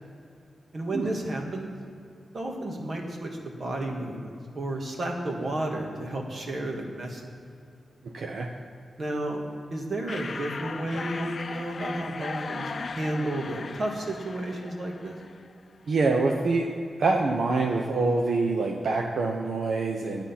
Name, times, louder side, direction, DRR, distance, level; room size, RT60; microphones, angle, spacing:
voice 1, 0.7-1.8 2.3-7.2 9.0-9.4 9.7-15.2, right 1 dB, 45° right, 1 dB, 1.7 m, -32 dB
voice 2, 8.0-8.5 15.9-16.7 17.0-20.2, right 3 dB, 70° right, 1 dB, 0.9 m, -25 dB
sound 1, 10.1-15.6, left 4 dB, 45° left, 0.4 m, -37 dB
12.5 x 8.9 x 5.8 m, 2.6 s
wide cardioid pair, 140°, 0 cm